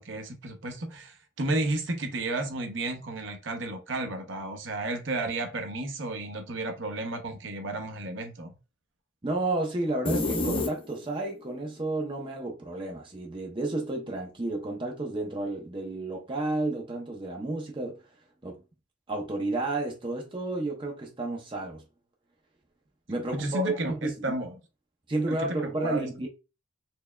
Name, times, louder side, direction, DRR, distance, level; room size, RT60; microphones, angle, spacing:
voice 1, 0.0-8.6 23.3-24.5 25.3-26.1, right 2 dB, 60° right, 0.8 m, -32 dB
voice 2, 9.2-18.0 18.4-18.6 19.1-21.8 23.1-24.1 25.1-26.3, right 2 dB, 25° right, 0.6 m, -31 dB
sound 1, 10.1-11.3, left 2 dB, 25° left, 0.5 m, -28 dB
4.4 x 3.4 x 2.2 m
head